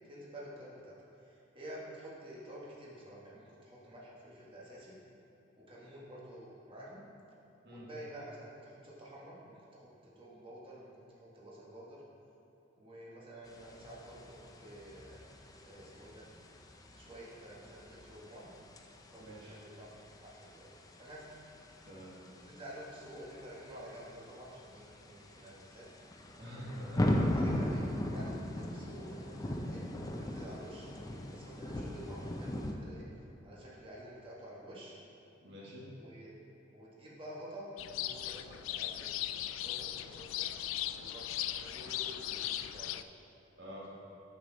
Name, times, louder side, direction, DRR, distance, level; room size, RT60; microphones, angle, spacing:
voice 1, 0.1-5.0 5.6-7.1 7.7-12.0 12.8-15.2 15.6-16.2 16.9-18.5 19.1-21.3 22.4-25.9 27.3-29.9 30.1-35.0 36.0-36.3 36.7-40.5 41.0-43.0, equal, 25° right, -6 dB, 1.4 m, -50 dB
sound 1, 13.5-32.7, left 1 dB, 20° left, 0.5 m, -39 dB
voice 2, 19.2-19.6 21.8-22.2 26.4-27.4 35.4-35.9 43.6-43.9, equal, 60° right, -4 dB, 1.4 m, -46 dB
sound 2, 37.8-43.0, left 12 dB, 85° left, 0.3 m, -38 dB
9.3 x 6.8 x 3.9 m, 3.0 s
head